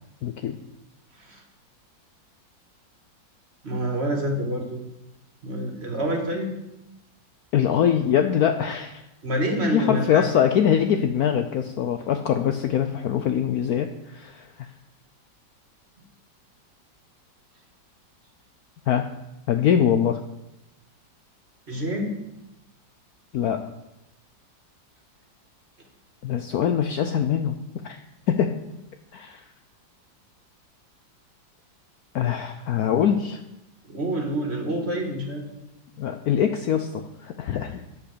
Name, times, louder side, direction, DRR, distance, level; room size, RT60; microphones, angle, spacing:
voice 1, 0.2-0.6 7.5-9.0 9.7-14.7 18.9-19.0 19.5-20.2 23.3-23.6 26.2-27.6 27.8-28.0 28.3-28.6 29.1-29.4 32.1-33.4 36.0-37.8, left 9 dB, 70° left, 7 dB, 0.9 m, -23 dB
voice 2, 3.6-4.8 5.4-6.5 9.2-10.3 21.7-22.2 33.8-35.5, equal, 35° right, 2 dB, 2.0 m, -27 dB
8.4 x 8.1 x 6.7 m, 0.91 s
omnidirectional pair, 2.0 m